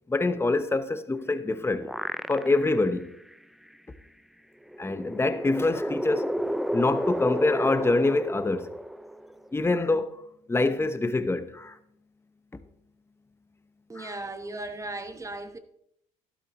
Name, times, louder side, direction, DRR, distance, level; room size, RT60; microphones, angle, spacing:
voice 1, 0.1-1.9 2.3-3.1 4.8-6.3 6.7-8.7 9.5-10.2 10.5-11.8 13.9-14.1, left 2 dB, 15° left, 1.0 m, -25 dB
sound 1, 1.2-2.9 3.3-3.4 4.7-9.5, equal, ahead, 0.4 m, -31 dB
voice 2, 13.9-15.6, right 2 dB, 20° right, 1.2 m, -36 dB
12.5 x 12.0 x 3.1 m
supercardioid pair, 70°, 15 cm